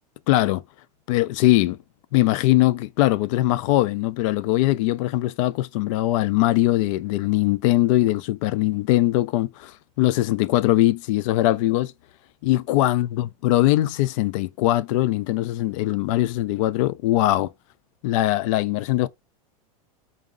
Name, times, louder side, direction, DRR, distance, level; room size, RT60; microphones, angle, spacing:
voice 1, 0.3-0.6 1.1-1.8 2.1-11.9 12.4-17.5 18.0-19.1, left 16 dB, 60° left, 0.4 m, -21 dB
4.8 x 2.1 x 3.7 m
supercardioid pair, 140°, 19 cm